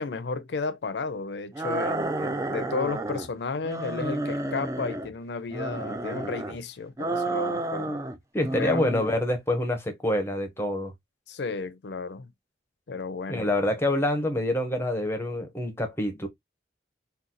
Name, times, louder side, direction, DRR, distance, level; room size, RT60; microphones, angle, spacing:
voice 1, 0.0-8.0 8.6-8.8 11.3-12.3 12.9-13.5, left 4 dB, 70° left, 0.5 m, -33 dB
sound 1, 1.5-3.3 3.6-5.1 5.5-6.6 7.0-8.2 8.4-9.2, right 2 dB, 15° right, 0.3 m, -31 dB
voice 2, 8.3-10.9 13.3-16.3, left 1 dB, 15° left, 0.7 m, -26 dB
3.7 x 2.3 x 2.7 m
head